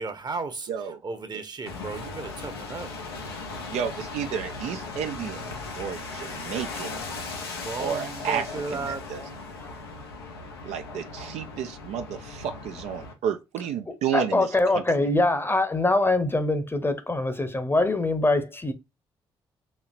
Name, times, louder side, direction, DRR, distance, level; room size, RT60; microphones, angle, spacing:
voice 1, 0.0-0.7 1.0-2.9 7.4-9.0, right 4 dB, 35° right, 0.9 m, -34 dB
voice 2, 0.7-1.0 3.7-7.0 7.8-9.2 10.6-15.1, right 8 dB, 60° right, 0.4 m, -32 dB
sound 1, 1.7-13.1, left 3 dB, 85° left, 0.6 m, -38 dB
voice 3, 13.9-18.7, left 2 dB, 20° left, 0.8 m, -23 dB
4.3 x 2.8 x 2.4 m
figure-of-eight pair, 40°, 12 cm